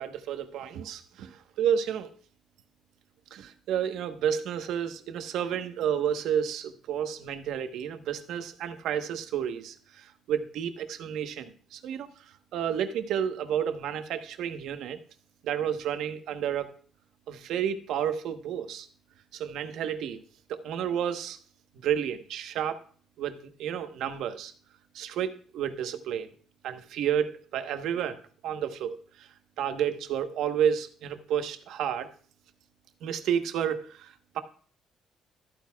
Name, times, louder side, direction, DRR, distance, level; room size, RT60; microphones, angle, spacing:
voice 1, 0.0-2.1 3.3-12.1 12.5-15.0 15.4-16.7 17.3-18.9 19.3-20.2 20.5-21.4 21.8-22.8 23.2-24.5 24.9-26.3 26.6-28.2 28.4-29.3 29.6-32.1 33.0-34.4, right 9 dB, 70° right, 8 dB, 1.2 m, -31 dB
13.5 x 9.0 x 2.4 m, 0.44 s
cardioid pair, 180°, 0 cm